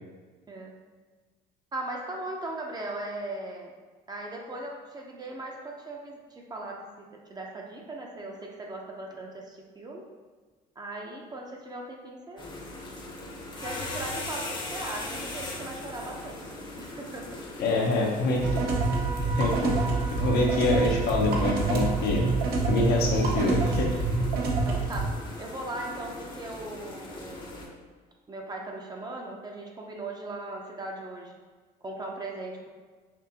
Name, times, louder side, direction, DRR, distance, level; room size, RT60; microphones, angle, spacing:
voice 1, 1.7-3.7 4.1-6.9 7.3-10.1 10.8-12.4 13.6-17.4 24.6-27.8 28.3-31.3 31.8-32.7, right 2 dB, 25° right, 0 dB, 0.6 m, -38 dB
sound 1, 12.4-27.7, left 2 dB, 25° left, 0.8 m, -40 dB
voice 2, 17.6-18.6 19.4-19.8 20.1-22.3 22.7-23.9, left 2 dB, 70° left, -1 dB, 0.9 m, -25 dB
sound 2, 18.4-25.1, right 3 dB, 65° right, 0.8 m, -27 dB
5.9 x 2.6 x 2.8 m, 1.4 s
cardioid pair, 110°, 17 cm